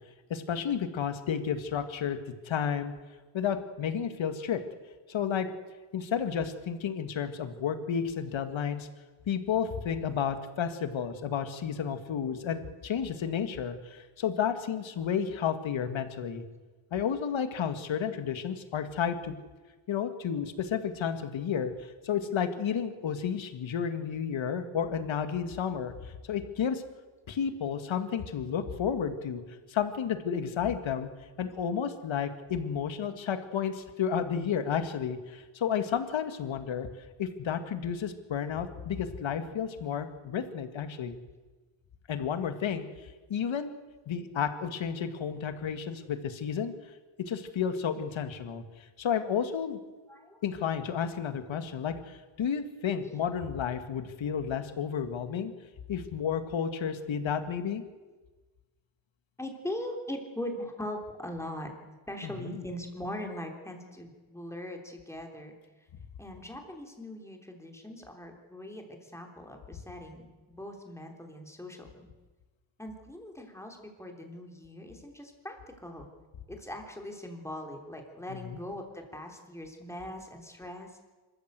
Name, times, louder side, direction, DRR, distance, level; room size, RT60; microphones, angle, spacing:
voice 1, 0.3-2.2 2.4-2.9 3.3-4.6 5.1-5.5 5.9-8.9 9.3-16.4 16.9-19.4 19.9-26.8 27.3-29.4 29.7-31.1 31.4-36.9 37.2-41.2 42.1-42.9 43.3-43.7 44.1-46.7 47.2-49.8 50.4-55.5 55.9-57.8 62.2-62.6 78.3-78.6, left 7 dB, 75° left, 9 dB, 1.9 m, -32 dB
voice 2, 50.1-50.4 53.0-53.2 53.5-53.6 59.4-61.7 62.1-65.9 66.2-71.9 72.8-76.1 76.5-81.0, left 1 dB, 5° left, 2 dB, 3.4 m, -41 dB
26.0 x 14.0 x 8.1 m, 1.3 s
wide cardioid pair, 120°, 46 cm